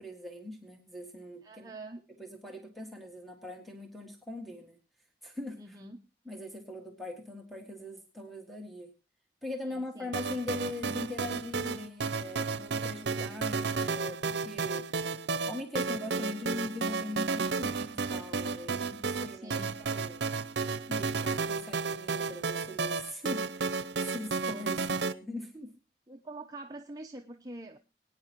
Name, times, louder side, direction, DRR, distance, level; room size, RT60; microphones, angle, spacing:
voice 1, 0.0-1.7 2.2-4.8 5.2-5.8 6.3-8.9 9.4-14.9 15.5-20.2 20.9-25.7, left 2 dB, ahead, 2 dB, 1.8 m, -41 dB
voice 2, 1.4-2.0 5.6-6.1 9.7-10.2 19.3-19.8 26.1-27.8, right 2 dB, 20° right, 2 dB, 0.8 m, -45 dB
sound 1, 10.1-25.1, right 4 dB, 80° right, 0.7 m, -32 dB
22.5 x 9.7 x 3.0 m, 0.29 s
head